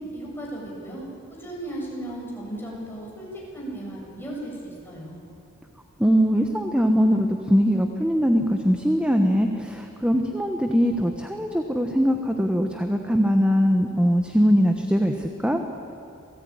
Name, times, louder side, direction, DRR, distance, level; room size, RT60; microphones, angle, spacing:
voice 1, 0.1-5.2, right 1 dB, 10° left, -4 dB, 7.3 m, -36 dB
voice 2, 6.0-15.6, equal, 5° right, 4 dB, 1.2 m, -21 dB
27.5 x 18.0 x 9.6 m, 2.6 s
head